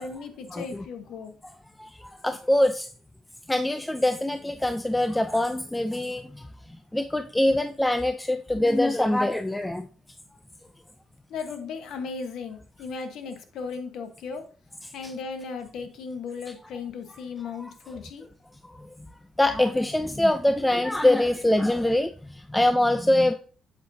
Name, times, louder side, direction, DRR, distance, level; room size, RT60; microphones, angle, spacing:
voice 1, 0.0-1.3 11.3-14.5 14.9-18.3, left 5 dB, 80° left, 7 dB, 1.3 m, -36 dB
voice 2, 1.8-2.9 3.5-6.5 6.9-9.9 15.0-15.1 17.6-17.7 18.7-18.8 19.4-23.3, left 1 dB, 10° left, 8 dB, 0.6 m, -24 dB
8.2 x 7.5 x 2.8 m, 0.38 s
cardioid pair, 90°, 0 cm